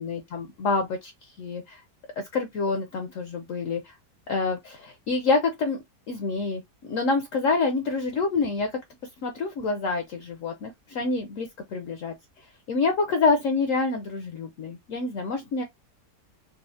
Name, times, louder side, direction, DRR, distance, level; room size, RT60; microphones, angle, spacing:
voice 1, 0.0-1.8 2.2-3.9 4.3-5.8 6.1-8.7 9.2-15.6, left 4 dB, 65° left, 0.8 m, -27 dB
4.1 x 2.0 x 2.6 m
omnidirectional pair, 1.8 m